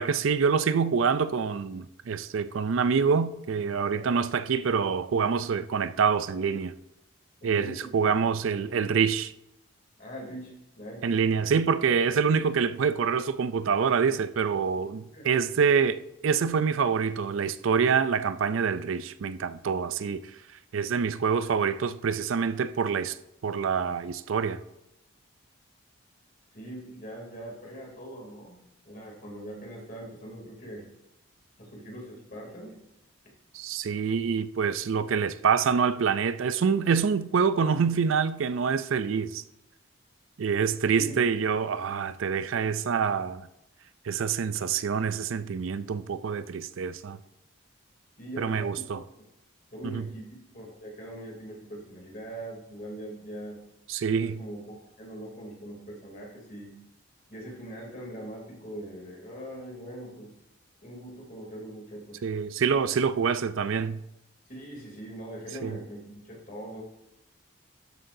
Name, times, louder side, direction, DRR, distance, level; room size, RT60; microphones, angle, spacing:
voice 1, 0.0-6.7 7.4-9.3 11.0-20.2 20.7-23.2 23.4-24.6 33.5-39.4 40.4-43.5 44.0-47.2 48.4-49.0 49.8-50.1 53.9-54.4 62.2-64.0 65.6-65.8, right 6 dB, 75° right, 0.4 m, -26 dB
voice 2, 7.4-8.1 10.0-11.1 15.1-15.3 26.5-30.9 31.6-32.8 40.9-41.3 48.2-48.8 49.7-53.6 54.1-56.7 57.3-60.3 60.8-62.3 64.5-66.8, right 1 dB, 40° left, 2.9 m, -42 dB
12.5 x 7.7 x 2.7 m
head